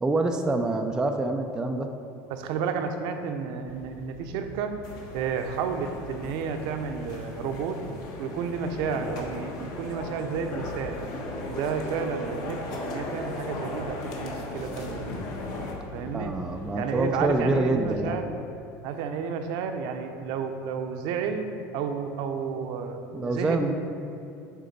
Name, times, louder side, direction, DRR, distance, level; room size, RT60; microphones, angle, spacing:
voice 1, 0.0-1.9 16.1-18.2 23.1-23.7, right 2 dB, 10° right, 4 dB, 0.3 m, -26 dB
voice 2, 2.3-4.7 5.1-7.8 8.2-11.0 11.5-12.6 12.8-15.1 15.9-16.3 16.7-18.3 18.8-21.5 21.7-23.7, right 6 dB, 65° right, 6 dB, 0.7 m, -31 dB
sound 1, 3.7-18.0, left 2 dB, 85° left, 0.6 m, -45 dB
sound 2, 4.8-15.7, left 2 dB, 55° left, 1.3 m, -37 dB
9.3 x 3.7 x 5.2 m, 2.7 s
cardioid pair, 145°, 8 cm